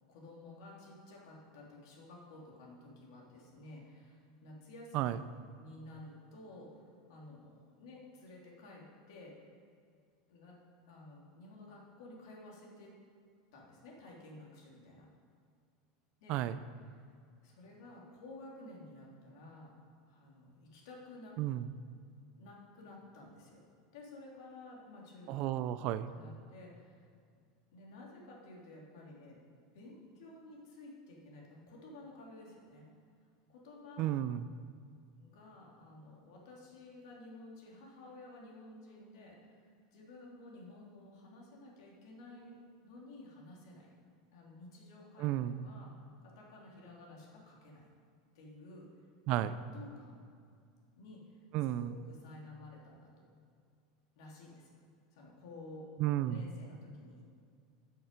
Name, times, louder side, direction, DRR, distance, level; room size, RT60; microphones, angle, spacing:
voice 1, 0.1-5.3 5.6-9.3 10.3-10.6 10.9-12.9 13.5-15.1 16.2-16.4 16.9-17.1 17.4-19.7 20.1-21.3 22.4-23.6 23.9-25.8 26.1-27.1 27.7-29.4 29.7-32.9 33.5-34.1 35.2-42.6 42.8-43.9 44.3-45.9 46.2-47.9 48.3-48.9 49.3-49.5 49.7-50.2 50.9-53.3 54.2-54.7 55.1-55.9 56.2-57.2, left 2 dB, 75° left, -2 dB, 2.7 m, -53 dB
voice 2, 21.4-21.7 25.3-26.1 34.0-34.5 45.2-45.7 49.3-49.5 51.5-51.9 56.0-56.5, right 13 dB, 45° right, 14 dB, 0.4 m, -33 dB
12.5 x 6.4 x 5.2 m, 2.2 s
supercardioid pair, 150°, 2 cm